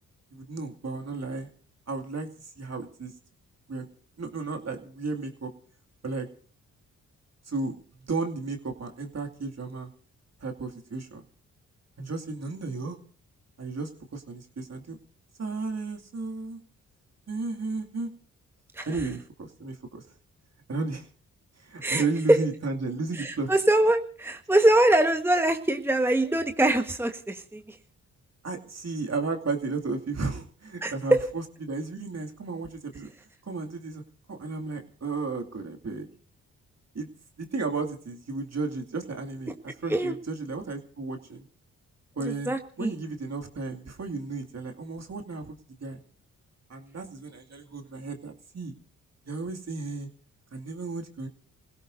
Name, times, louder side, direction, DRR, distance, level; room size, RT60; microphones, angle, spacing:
voice 1, 0.3-1.5 1.9-3.1 3.7-3.9 4.2-5.5 6.0-6.3 7.5-7.7 8.0-9.9 10.4-11.2 12.0-13.0 13.6-15.0 15.4-16.6 17.3-18.1 18.9-20.0 20.7-21.1 21.6-23.5 28.4-33.1 33.4-34.0 34.3-36.1 36.9-37.1 37.4-41.5 42.1-46.0 46.7-48.8 49.3-50.1 50.5-51.3, right 3 dB, 45° right, 3 dB, 2.5 m, -33 dB
voice 2, 21.8-22.4 23.2-27.6 30.8-31.3 39.9-40.2 42.5-42.9, right 1 dB, 5° right, 6 dB, 1.4 m, -23 dB
28.5 x 16.5 x 2.7 m, 0.43 s
hypercardioid pair, 40°, 36 cm